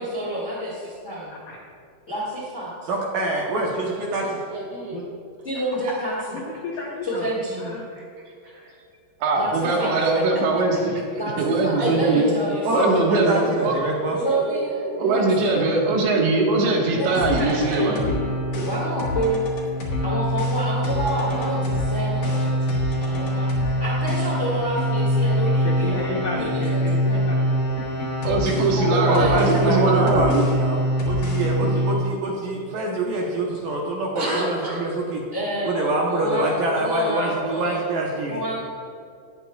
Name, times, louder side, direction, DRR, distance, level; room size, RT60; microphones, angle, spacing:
voice 1, 0.0-1.3 2.1-2.9 5.4-6.4 7.0-7.8 9.3-9.9 11.1-13.2 14.2-14.7 15.0-15.2 15.5-15.8 16.9-18.0 18.6-19.5 20.0-26.0 26.3-27.2 28.7-29.7 35.3-37.8 38.2-38.7, right 1 dB, 30° left, -6 dB, 1.3 m, -29 dB
voice 2, 2.9-4.4 12.7-14.2 29.0-30.8 31.1-35.2 35.7-38.4, right 2 dB, 70° right, -2 dB, 2.3 m, -25 dB
voice 3, 3.9-5.0 5.9-6.0 8.0-8.7 9.8-10.4 10.7-11.0 11.8-12.3 13.1-15.2 23.0-23.1 25.8-26.1 34.2-34.9, right 2 dB, 50° right, -2 dB, 2.4 m, -31 dB
voice 4, 6.3-7.3 7.6-7.9 25.6-27.7, left 4 dB, 75° left, -3 dB, 1.9 m, -32 dB
voice 5, 9.2-11.0 11.4-12.3 12.7-13.7 15.0-18.1 18.6-18.7 28.3-30.4 31.6-31.8, right 3 dB, 85° right, -1 dB, 3.9 m, -21 dB
sound 1, 17.1-31.9, equal, 55° left, 2.0 m, -24 dB
19.0 x 8.5 x 2.4 m, 2.3 s
omnidirectional pair, 5.0 m